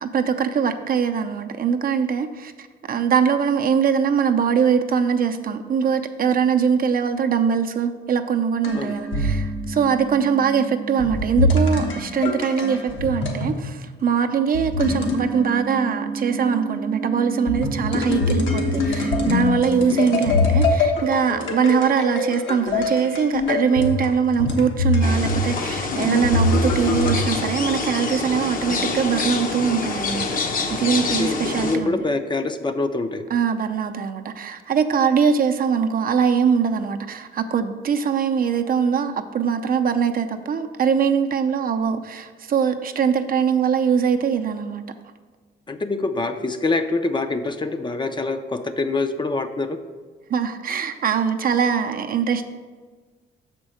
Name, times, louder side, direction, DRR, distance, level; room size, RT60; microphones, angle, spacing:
voice 1, 0.0-30.3 30.7-32.0 33.3-44.8 50.3-52.4, right 6 dB, 45° right, 6 dB, 0.5 m, -22 dB
sound 1, 8.6-13.6 14.5-27.5, left 2 dB, 70° left, 1.2 m, -24 dB
sound 2, 25.0-31.8, left 3 dB, 45° left, 0.8 m, -26 dB
voice 2, 31.6-33.3 45.7-49.8, left 3 dB, 25° left, 8 dB, 0.5 m, -25 dB
6.2 x 4.4 x 6.3 m, 1.4 s
cardioid pair, 90°, 20 cm